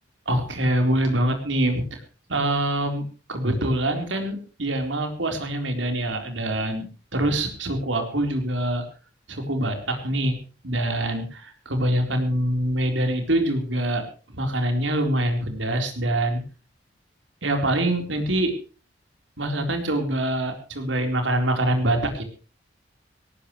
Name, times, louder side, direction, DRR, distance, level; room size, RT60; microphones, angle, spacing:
voice 1, 0.3-2.0 2.3-6.9 7.1-8.8 9.3-10.4 10.6-16.4 17.4-18.6 19.4-22.2, right 1 dB, 75° right, 5 dB, 4.1 m, -25 dB
18.5 x 18.0 x 3.2 m, 0.36 s
head